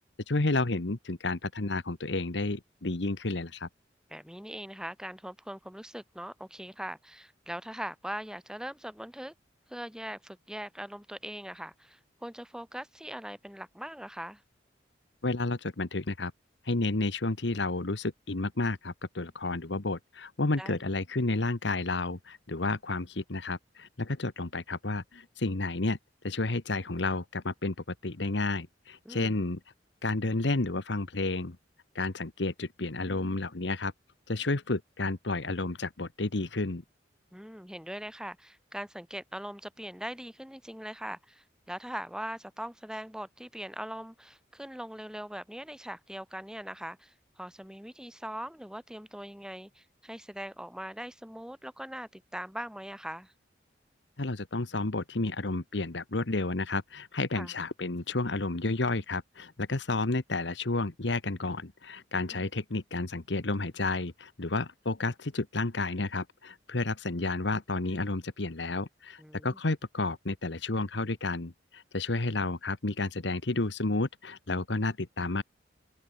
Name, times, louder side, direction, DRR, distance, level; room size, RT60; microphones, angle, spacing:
voice 1, 0.3-3.7 15.2-16.3 16.6-26.0 26.2-27.7 28.0-29.6 30.0-31.6 31.9-33.9 34.3-36.8 54.2-75.4, left 2 dB, 70° left, 1.3 m, -31 dB
voice 2, 4.1-9.3 9.7-14.4 20.6-20.8 29.0-29.4 37.3-53.3 57.3-57.5 62.3-62.5 69.2-69.6, equal, 5° right, 3.3 m, -41 dB
head